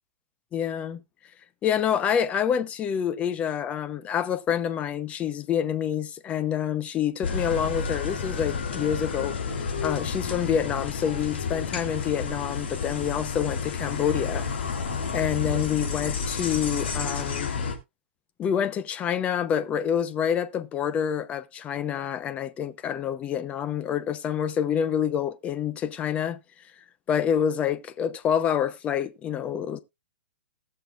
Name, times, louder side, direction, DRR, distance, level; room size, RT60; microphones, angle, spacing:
voice 1, 0.5-1.0 1.6-9.4 9.8-14.5 15.1-17.5 18.4-26.4 27.1-29.8, left 8 dB, 20° left, 0.8 m, -27 dB
sound 1, 7.2-17.7, left 5 dB, 65° left, 3.2 m, -30 dB
19.0 x 6.6 x 2.4 m
hypercardioid pair, 140°, 6 cm